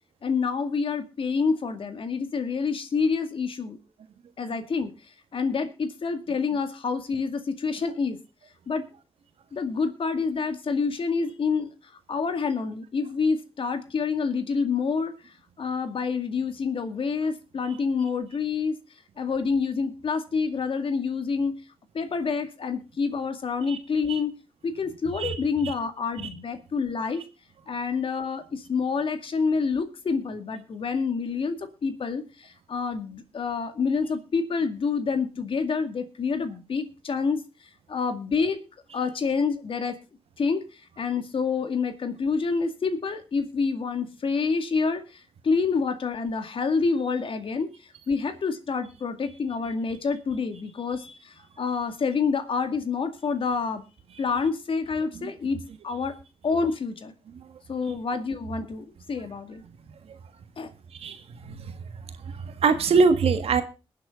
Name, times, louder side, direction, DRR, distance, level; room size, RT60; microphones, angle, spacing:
voice 1, 0.2-3.8 4.4-4.9 5.3-8.2 8.7-8.9 9.5-11.7 12.1-18.8 19.2-21.6 21.9-24.3 24.6-27.2 27.7-37.4 37.9-38.6 38.9-40.0 40.4-47.7 48.1-53.8 54.2-55.6 55.8-56.1 56.4-57.1 57.7-59.6 60.6-60.7, left 5 dB, 60° left, 2.1 m, -27 dB
voice 2, 60.9-61.8 62.3-63.6, right 4 dB, 75° right, 1.6 m, -24 dB
21.5 x 7.7 x 3.8 m
cardioid pair, 65°, 10 cm